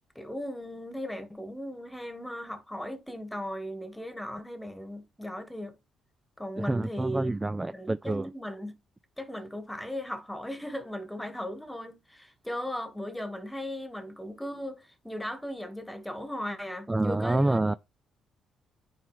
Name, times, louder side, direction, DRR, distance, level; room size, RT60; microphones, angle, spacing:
voice 1, 0.2-5.8 6.4-7.3 7.7-8.7 9.2-17.6, equal, 5° left, 1.7 m, -37 dB
voice 2, 6.6-8.3 16.9-17.7, right 2 dB, 15° right, 0.3 m, -27 dB
9.5 x 4.4 x 3.2 m
cardioid pair, 90°, 0 cm